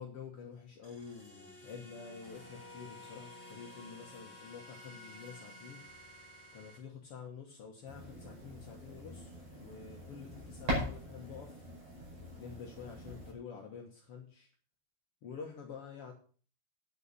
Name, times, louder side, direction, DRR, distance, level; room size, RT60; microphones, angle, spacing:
voice 1, 0.0-5.8 6.5-11.6 12.4-14.5 15.2-16.1, left 6 dB, 65° left, 1 dB, 1.4 m, -48 dB
sound 1, 0.8-6.8, left 1 dB, 10° right, 3.3 m, -52 dB
sound 2, 7.9-13.3, equal, 40° right, 6.5 m, -41 dB
10.0 x 7.0 x 6.8 m, 0.41 s
omnidirectional pair, 4.7 m